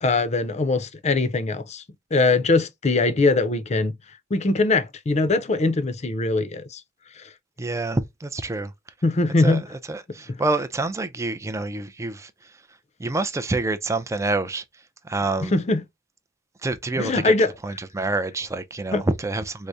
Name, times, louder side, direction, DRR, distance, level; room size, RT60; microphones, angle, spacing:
voice 1, 0.0-1.8 2.1-3.9 4.3-6.8 7.2-7.3 9.0-9.6 15.4-15.8 17.0-17.5 18.9-19.0, left 3 dB, 35° left, 0.5 m, -21 dB
voice 2, 7.6-8.7 9.4-12.3 13.0-14.6 15.0-15.6 16.6-17.3 17.6-19.7, right 2 dB, 15° right, 0.4 m, -27 dB
4.7 x 2.1 x 2.6 m
head